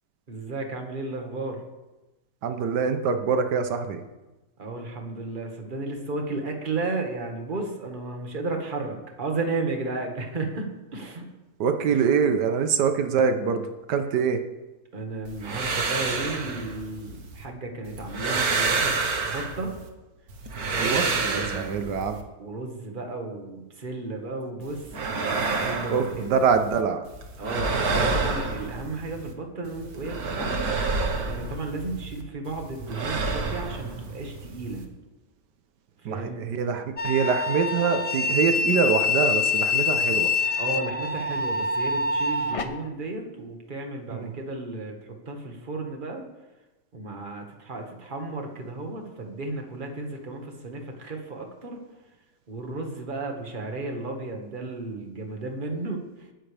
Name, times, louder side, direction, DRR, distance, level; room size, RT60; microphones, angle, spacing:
voice 1, 0.3-1.6 4.6-11.3 11.9-12.0 14.9-19.8 20.6-26.3 27.4-30.7 31.2-34.8 36.0-36.5 40.6-46.2 46.9-51.8 52.5-56.0, right 3 dB, 30° right, 2 dB, 1.7 m, -34 dB
voice 2, 2.4-4.0 11.6-14.4 20.8-22.2 25.9-27.0 36.0-40.3 44.1-44.3, right 6 dB, 85° right, 8 dB, 1.5 m, -24 dB
sound 1, 15.3-17.4 17.9-19.9 20.3-22.2 24.6-26.8 27.1-29.3 29.6-32.2 32.5-34.8, right 3 dB, 65° right, 1.8 m, -29 dB
sound 2, 37.0-42.6, left 4 dB, 45° left, 0.4 m, -25 dB
19.5 x 10.0 x 3.4 m, 1.1 s
omnidirectional pair, 1.8 m